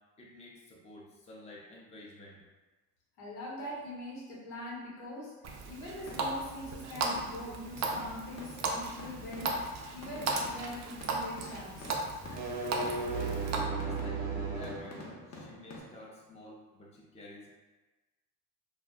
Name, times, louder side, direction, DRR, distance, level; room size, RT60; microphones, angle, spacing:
voice 1, 0.2-2.4 13.8-14.2 14.6-17.6, left 1 dB, 15° left, -3 dB, 0.5 m, -51 dB
voice 2, 3.2-5.3 5.7-9.5 9.9-12.0, left 1 dB, 85° left, -4 dB, 1.0 m, -43 dB
Water tap faucet, 5.4-13.6, right 3 dB, 40° right, 0.4 m, -36 dB
sound 1, 6.1-6.5 7.1-7.6 7.9-15.8, left 2 dB, 35° left, 0.8 m, -48 dB
sound 2, 12.2-15.0, right 4 dB, 80° right, 0.8 m, -35 dB
2.3 x 2.1 x 3.6 m, 1.2 s
supercardioid pair, 95°, 43 cm